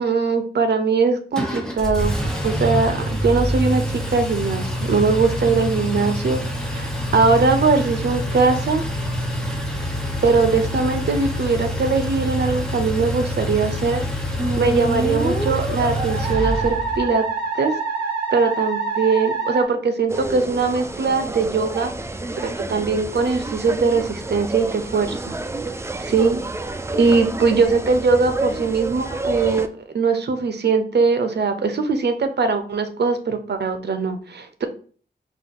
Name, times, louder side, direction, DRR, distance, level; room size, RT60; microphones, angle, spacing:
voice 1, 0.0-3.8 4.1-6.4 6.7-8.8 10.2-17.3 17.5-17.7 18.3-21.9 22.4-25.3 26.0-26.4 26.9-29.7 29.9-34.6, right 4 dB, 75° right, 7 dB, 0.7 m, -21 dB
Engine, 1.3-17.1, equal, 5° left, 0.9 m, -26 dB
Musical instrument, 14.4-19.6, right 3 dB, 55° right, 1.8 m, -26 dB
sound 1, 20.1-29.7, right 2 dB, 15° right, 0.4 m, -29 dB
5.4 x 2.3 x 3.7 m, 0.43 s
wide cardioid pair, 110°, 18 cm